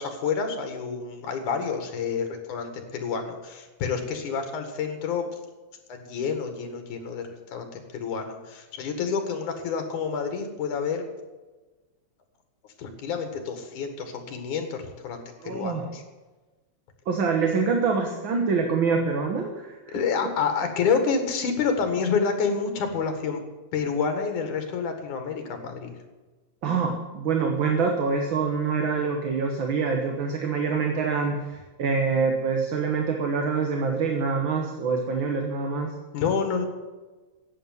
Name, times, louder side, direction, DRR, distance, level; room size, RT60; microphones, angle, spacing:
voice 1, 0.0-5.3 5.9-11.0 12.8-16.0 19.9-23.4 23.7-26.0 36.1-36.7, left 5 dB, 85° left, 6 dB, 3.3 m, -28 dB
voice 2, 15.4-15.8 17.1-19.7 26.6-35.9, right 5 dB, 50° right, 2 dB, 1.7 m, -25 dB
11.0 x 8.7 x 9.3 m, 1.2 s
omnidirectional pair, 3.4 m